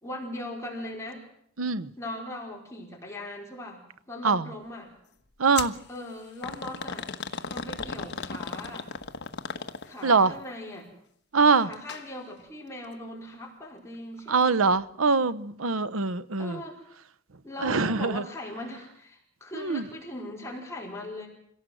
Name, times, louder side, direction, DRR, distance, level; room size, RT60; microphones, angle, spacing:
voice 1, 0.0-1.2 2.0-4.9 5.9-7.1 7.5-8.9 9.9-10.9 11.5-14.6 16.4-16.8 17.4-21.3, left 1 dB, 15° left, 4.8 m, -39 dB
voice 2, 1.6-1.9 4.2-4.5 5.4-5.7 10.0-10.3 11.3-11.7 14.3-16.6 17.6-18.2 19.5-19.8, right 4 dB, 90° right, 0.9 m, -23 dB
sound 1, 5.5-5.8 6.4-10.1 11.7-12.0 12.4-12.5 13.3-13.4, left 5 dB, 55° left, 1.4 m, -36 dB
26.0 x 17.5 x 7.8 m
head